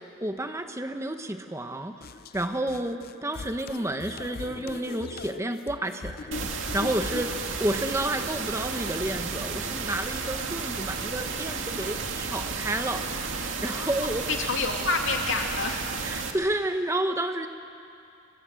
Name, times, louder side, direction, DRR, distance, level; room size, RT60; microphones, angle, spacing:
voice 1, 0.2-6.4 6.7-13.0 13.6-14.2 16.0-17.5, right 1 dB, 15° right, 6 dB, 1.2 m, -30 dB
sound 1, 2.0-7.3, left 4 dB, 50° left, 0.5 m, -40 dB
sound 2, 6.3-16.3, right 4 dB, 75° right, 2.3 m, -33 dB
sound 3, 6.8-14.1, left 2 dB, 20° left, 3.4 m, -55 dB
voice 2, 13.7-15.9, left 3 dB, 70° left, 2 dB, 2.8 m, -29 dB
29.0 x 23.5 x 7.8 m, 2.5 s
head